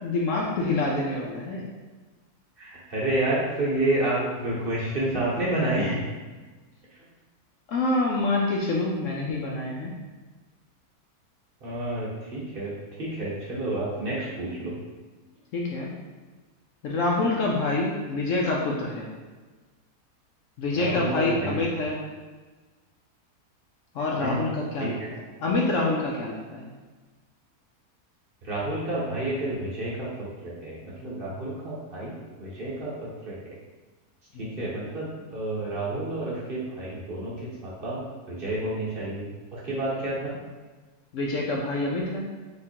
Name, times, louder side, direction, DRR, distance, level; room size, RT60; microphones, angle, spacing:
voice 1, 0.0-1.7 7.7-9.9 15.5-15.9 16.8-19.1 20.6-22.0 23.9-26.7 34.3-34.6 41.1-42.3, left 2 dB, 70° left, -2 dB, 0.8 m, -27 dB
voice 2, 2.6-6.0 11.6-12.7 13.0-14.7 20.7-21.6 24.2-24.4 24.8-25.1 28.4-32.9 33.2-33.5 34.4-37.3 37.6-39.2 39.5-40.3, right 1 dB, 40° right, -7 dB, 1.0 m, -29 dB
3.6 x 3.0 x 4.3 m, 1.3 s
omnidirectional pair, 1.6 m